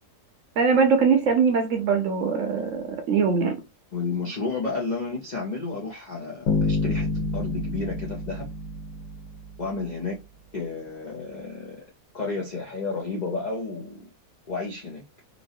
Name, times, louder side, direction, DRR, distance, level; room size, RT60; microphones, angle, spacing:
voice 1, 0.6-3.5, right 5 dB, 65° right, 0.8 m, -22 dB
voice 2, 3.9-7.1 7.3-8.5 9.6-10.2 10.5-11.9 12.1-14.1 14.5-15.0, left 3 dB, 70° left, 0.4 m, -31 dB
sound 1, 6.5-9.5, left 3 dB, 55° left, 1.3 m, -27 dB
3.0 x 2.6 x 2.6 m
omnidirectional pair, 1.7 m